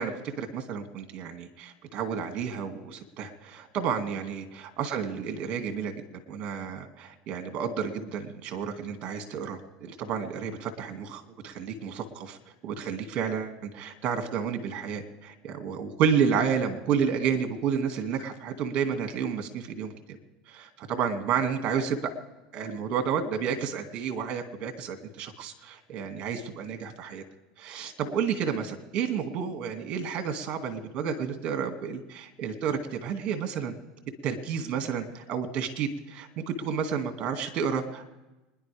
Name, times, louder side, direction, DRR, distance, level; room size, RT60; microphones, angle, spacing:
voice 1, 0.0-12.4 12.6-20.2 20.5-22.0 22.5-27.2 27.6-33.7 34.2-38.1, right 7 dB, 50° right, 6 dB, 2.2 m, -31 dB
26.0 x 10.5 x 3.5 m, 1.0 s
supercardioid pair, 105°, 3 cm